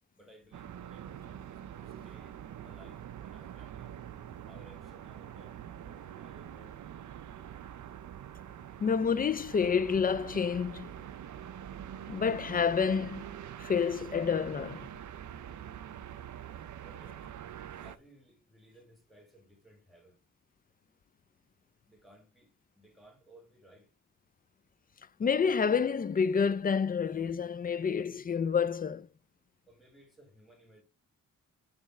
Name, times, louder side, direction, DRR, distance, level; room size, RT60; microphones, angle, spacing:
voice 1, 0.1-4.0 4.5-6.8 16.5-17.2 17.8-20.2 21.8-23.9 29.7-30.8, right 1 dB, ahead, 2.5 m, -59 dB
sound 1, 0.5-18.0, right 10 dB, 65° right, 0.6 m, -45 dB
voice 2, 8.8-10.9 12.1-13.2 13.6-14.9 25.2-29.1, left 6 dB, 30° left, 0.4 m, -28 dB
7.1 x 3.3 x 4.7 m
cardioid pair, 90°, 32 cm